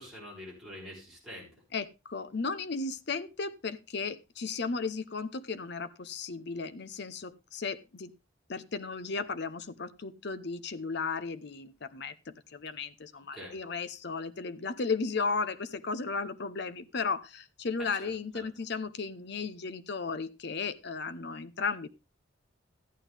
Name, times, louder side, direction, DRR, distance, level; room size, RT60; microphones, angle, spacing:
voice 1, 0.0-1.5 13.3-13.6 17.8-18.1, equal, ahead, -5 dB, 6.4 m, -45 dB
voice 2, 1.7-8.1 8.5-21.9, left 4 dB, 55° left, 12 dB, 0.7 m, -35 dB
14.0 x 9.2 x 3.4 m, 0.27 s
head